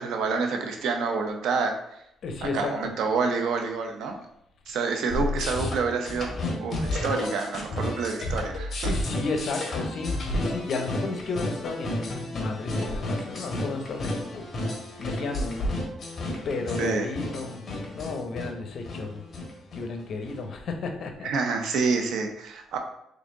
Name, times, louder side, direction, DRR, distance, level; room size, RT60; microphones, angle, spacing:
voice 1, 0.0-2.0 2.4-4.2 4.7-6.3 6.6-8.9 16.8-17.1 21.2-22.8, right 4 dB, 80° right, 4 dB, 0.7 m, -28 dB
voice 2, 2.2-2.9 8.8-14.5 15.0-15.7 16.4-17.6 17.9-19.2 19.7-21.5, left 3 dB, 60° left, 5 dB, 0.8 m, -33 dB
sound 1, 5.1-20.4, left 1 dB, 40° left, 1.4 m, -32 dB
4.0 x 3.4 x 3.7 m, 0.79 s
cardioid pair, 90°, 0 cm